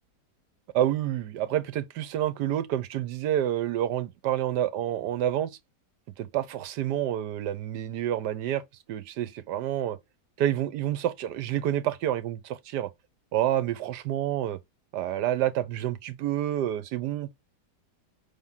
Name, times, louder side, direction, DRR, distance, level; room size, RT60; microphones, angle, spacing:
voice 1, 0.7-5.5 6.2-8.6 8.9-10.0 10.4-12.9 13.3-14.6 14.9-17.3, right 11 dB, 80° right, 1.3 m, -28 dB
6.0 x 3.6 x 5.7 m
omnidirectional pair, 1.8 m